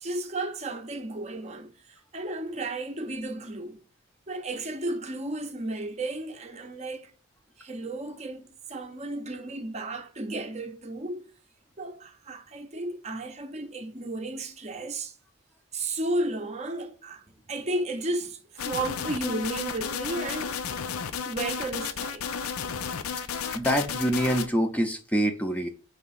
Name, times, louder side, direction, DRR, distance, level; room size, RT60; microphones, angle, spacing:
voice 1, 0.0-3.8 4.3-7.1 7.6-11.3 11.8-15.1 15.7-18.4 18.6-20.6 21.3-22.3, right 2 dB, 30° right, 0.6 m, -33 dB
sound 1, 18.6-24.5, left 6 dB, 90° left, 0.6 m, -33 dB
voice 2, 23.5-25.7, equal, 5° left, 0.5 m, -25 dB
5.0 x 3.5 x 5.5 m
head